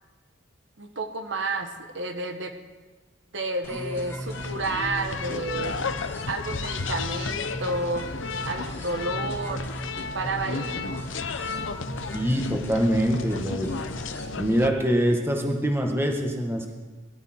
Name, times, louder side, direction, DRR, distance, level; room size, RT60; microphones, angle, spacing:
voice 1, 0.8-2.5 3.3-5.8 6.3-8.1 8.4-11.0, right 2 dB, 65° right, 5 dB, 1.3 m, -31 dB
sound 1, 3.6-14.3, right 1 dB, 10° left, 2.2 m, -38 dB
sound 2, 4.3-14.7, left 4 dB, 75° left, 0.8 m, -33 dB
voice 2, 12.1-13.7 14.4-16.7, equal, 10° right, 2 dB, 1.6 m, -24 dB
22.0 x 12.5 x 4.5 m, 1.3 s
head